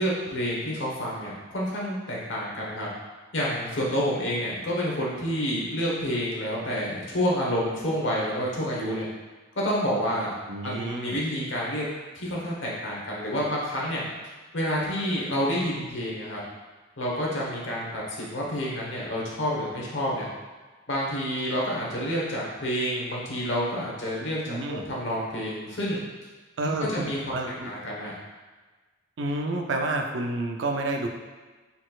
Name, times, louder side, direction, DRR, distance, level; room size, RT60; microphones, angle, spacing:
voice 1, 0.0-2.9 3.3-9.1 9.6-10.3 10.6-11.9 12.1-14.0 14.5-16.4 17.0-20.3 20.9-24.6 24.9-26.0 26.6-28.1, equal, 70° left, -4 dB, 1.1 m, -29 dB
voice 2, 10.5-11.2 24.5-24.8 26.6-27.7 29.2-31.1, right 2 dB, 65° right, 3 dB, 0.5 m, -29 dB
4.1 x 4.1 x 2.4 m, 1.3 s
head